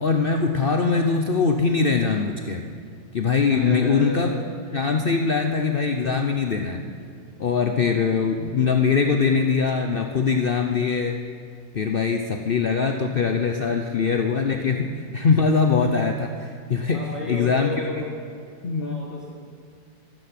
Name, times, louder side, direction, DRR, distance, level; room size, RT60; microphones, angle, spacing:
voice 1, 0.0-2.7 3.1-4.3 4.7-6.8 7.4-11.2 11.7-17.0 17.3-17.9 18.6-19.0, left 5 dB, 85° left, 4 dB, 0.4 m, -22 dB
voice 2, 3.5-4.4 16.9-18.1 18.8-19.3, equal, ahead, -8 dB, 4.5 m, -33 dB
13.5 x 12.5 x 5.8 m, 2.3 s
omnidirectional pair, 2.0 m